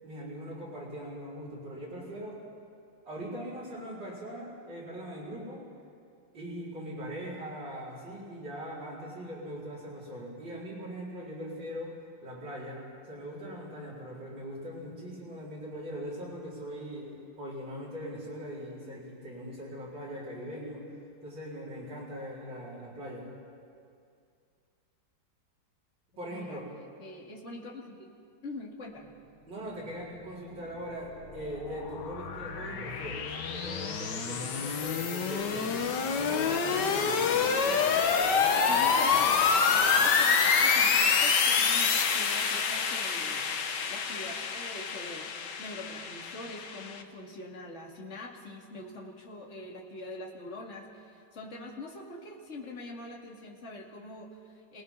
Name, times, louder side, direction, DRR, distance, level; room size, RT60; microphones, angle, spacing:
voice 1, 0.0-2.4 3.1-5.6 6.3-12.0 12.2-20.9 21.2-23.3 26.2-26.7 29.5-35.7 36.1-37.4, equal, 80° right, -7 dB, 5.3 m, -40 dB
voice 2, 26.1-26.6 27.0-28.1 28.4-29.2 37.3-37.6 38.5-45.3 45.6-54.8, left 2 dB, 40° left, -2 dB, 2.6 m, -44 dB
sound 1, 31.0-47.0, left 5 dB, 70° left, 1.8 m, -27 dB
28.5 x 19.0 x 5.7 m, 2.3 s
omnidirectional pair, 2.0 m